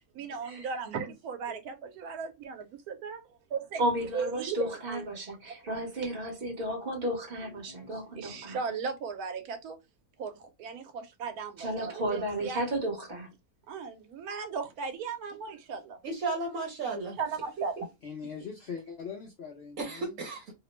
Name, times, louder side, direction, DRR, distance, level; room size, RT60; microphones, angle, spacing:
voice 1, 0.1-3.2 3.5-3.8 4.1-5.0 8.2-9.8 10.2-12.6 13.7-16.0 17.2-17.9, right 5 dB, 85° right, 1.1 m, -37 dB
voice 2, 3.8-8.6 11.6-13.3 17.6-17.7, right 1 dB, 40° right, 1.1 m, -33 dB
voice 3, 7.4-8.0 8.3-8.6 18.0-20.2, left 6 dB, 60° left, 0.6 m, -43 dB
voice 4, 16.0-17.2 19.8-20.5, right 3 dB, 65° right, 1.2 m, -34 dB
2.8 x 2.1 x 2.9 m
omnidirectional pair, 1.6 m